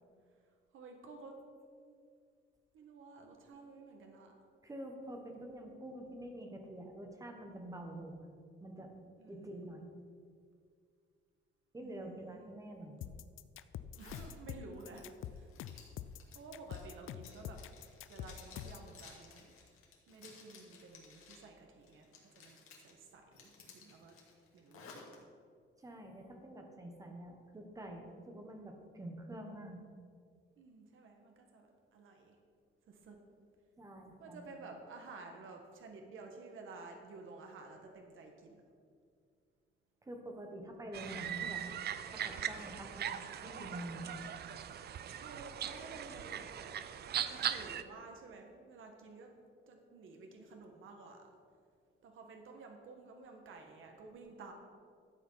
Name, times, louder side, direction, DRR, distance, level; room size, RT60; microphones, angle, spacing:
voice 1, 0.7-1.3 1.7-2.0 2.7-4.4 9.2-9.7 11.8-12.5 14.0-15.0 15.3-15.5 16.3-17.6 18.0-19.5 20.1-24.1 24.5-25.0 30.6-32.4 32.8-33.2 34.2-38.6 43.4-44.0 45.1-46.8 47.1-49.3 49.7-51.3 52.0-54.5, right 3 dB, 70° right, 3 dB, 1.5 m, -52 dB
voice 2, 4.6-8.3 8.6-8.9 9.3-9.9 11.7-12.9 25.8-29.8 33.8-34.5 40.0-41.6 42.1-44.1, right 1 dB, 15° right, 3 dB, 1.4 m, -47 dB
sound 1, 13.0-18.9, left 10 dB, 75° left, 0.5 m, -46 dB
Zipper (clothing), 13.9-14.3 14.7-21.5 21.8-22.9 23.3-25.2, left 5 dB, 90° left, 2.4 m, -57 dB
sound 2, 40.9-47.8, right 9 dB, 50° right, 0.5 m, -40 dB
12.5 x 8.3 x 5.7 m, 2.2 s
wide cardioid pair, 175°, 21 cm